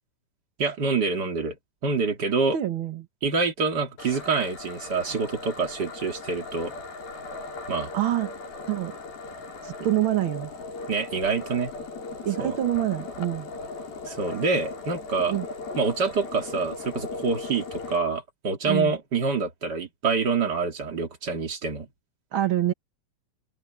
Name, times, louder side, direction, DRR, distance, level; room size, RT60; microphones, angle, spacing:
voice 1, 0.6-1.6 1.8-2.6 3.2-6.7 7.7-7.9 10.9-11.7 12.4-12.6 14.1-15.4 15.8-21.9, right 4 dB, 30° right, 2.4 m, -26 dB
voice 2, 2.5-3.1 7.9-8.3 8.7-8.9 9.6-10.5 12.2-13.5 15.3-15.5 18.6-18.9 22.3-22.7, right 13 dB, 70° right, 1.2 m, -26 dB
sound 1, 4.0-18.0, left 3 dB, 80° left, 7.1 m, -38 dB
open air
omnidirectional pair, 4.2 m